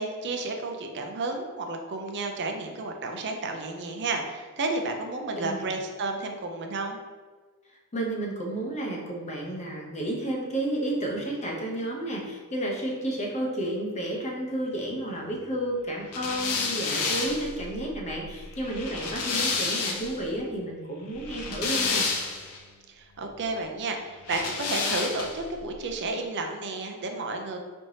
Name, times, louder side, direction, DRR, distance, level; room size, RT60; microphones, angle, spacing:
voice 1, 0.0-7.0 22.9-27.6, right 3 dB, 55° right, 4 dB, 0.5 m, -32 dB
voice 2, 5.4-5.7 7.9-22.1, right 1 dB, 30° left, -1 dB, 0.7 m, -31 dB
sound 1, 16.1-20.2 21.1-22.6 24.2-25.5, left 4 dB, 80° left, 0.6 m, -30 dB
4.3 x 3.2 x 2.8 m, 1.5 s
head